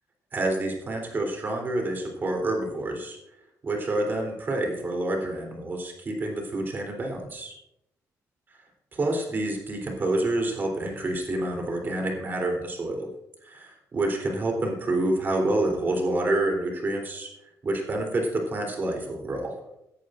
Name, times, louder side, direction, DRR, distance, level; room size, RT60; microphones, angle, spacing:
voice 1, 0.3-3.2 3.6-7.5 8.9-13.1 13.5-17.3 17.6-19.5, right 2 dB, 35° right, 1 dB, 3.5 m, -28 dB
17.0 x 11.0 x 2.6 m, 0.81 s
cardioid pair, 135°, 6 cm